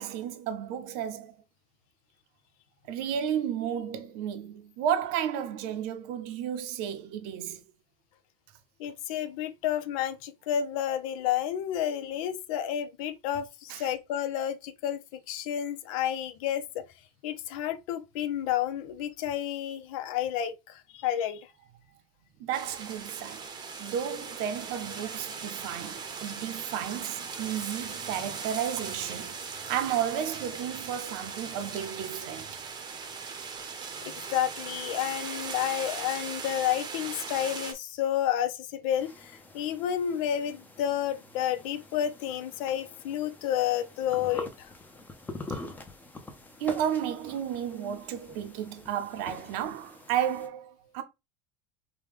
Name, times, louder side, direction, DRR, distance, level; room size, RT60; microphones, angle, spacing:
voice 1, 0.0-1.3 2.9-7.6 13.7-13.8 22.4-23.5 23.8-32.5 46.6-51.0, right 9 dB, 65° right, 0.7 m, -32 dB
voice 2, 8.8-15.0 15.3-16.8 17.2-21.5 34.0-44.7, left 10 dB, 90° left, 0.6 m, -30 dB
sound 1, 22.5-37.7, right 5 dB, 25° right, 0.7 m, -39 dB
sound 2, 39.0-50.5, left 2 dB, 10° left, 0.6 m, -45 dB
4.8 x 2.2 x 3.4 m
cardioid pair, 145°, 17 cm